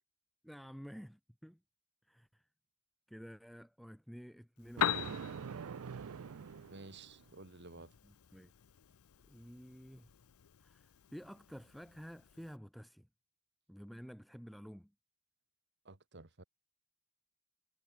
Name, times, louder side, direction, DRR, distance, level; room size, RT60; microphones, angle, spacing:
voice 1, 0.4-1.6 2.0-2.5 3.1-5.0 8.0-8.5 9.3-10.1 10.6-13.1 13.7-14.9, equal, ahead, 2.0 m, -51 dB
Piano, 4.6-12.6, left 9 dB, 85° left, 0.6 m, -43 dB
Thunder, 4.8-7.3, right 6 dB, 80° right, 0.5 m, -44 dB
voice 2, 6.7-7.9 15.8-16.4, right 3 dB, 55° right, 2.3 m, -53 dB
head